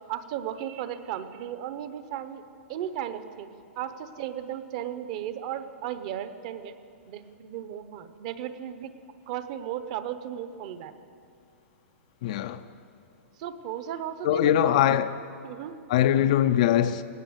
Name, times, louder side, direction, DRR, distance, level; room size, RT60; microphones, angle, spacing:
voice 1, 0.1-2.4 2.7-3.5 3.8-6.8 7.1-8.9 9.3-10.9 13.4-14.8 15.4-15.7, right 10 dB, 30° right, 0.8 m, -35 dB
voice 2, 12.2-12.6 14.2-15.2 15.9-17.0, left 11 dB, 30° left, 0.5 m, -22 dB
18.5 x 18.5 x 8.0 m
hypercardioid pair, 180°, 7 cm